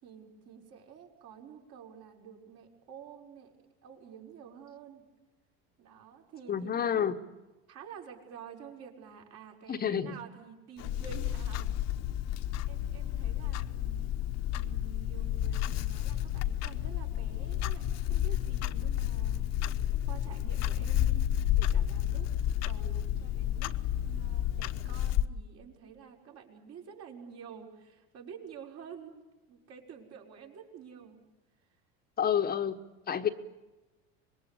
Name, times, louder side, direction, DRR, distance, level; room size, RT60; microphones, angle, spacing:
voice 1, 0.0-3.6 3.8-5.1 5.8-7.1 7.7-11.8 12.0-12.2 12.7-14.1 14.5-19.5 20.1-22.3 22.6-23.7 24.0-31.2 31.6-31.8, right 7 dB, 50° right, 1 dB, 5.9 m, -49 dB
voice 2, 6.5-7.1 9.7-10.1 32.2-32.8 33.1-33.3, left 8 dB, 30° left, 8 dB, 1.2 m, -29 dB
Clock, 10.8-25.3, left 11 dB, 55° left, 1.2 m, -31 dB
25.5 x 21.5 x 8.6 m, 1.1 s
supercardioid pair, 120°, 31 cm